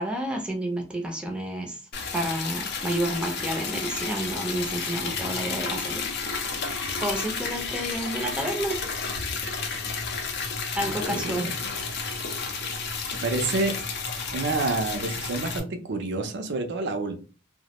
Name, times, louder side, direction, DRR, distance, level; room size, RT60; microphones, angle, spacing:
voice 1, 0.0-1.8 2.1-6.1 6.6-8.8 10.7-11.5, right 1 dB, 5° right, 1 dB, 0.5 m, -30 dB
Liquid, 1.9-15.6, left 4 dB, 55° left, 0.5 m, -31 dB
voice 2, 10.8-11.7 13.2-13.8 14.3-17.2, right 3 dB, 60° right, 7 dB, 0.5 m, -29 dB
2.2 x 2.0 x 2.8 m, 0.35 s
head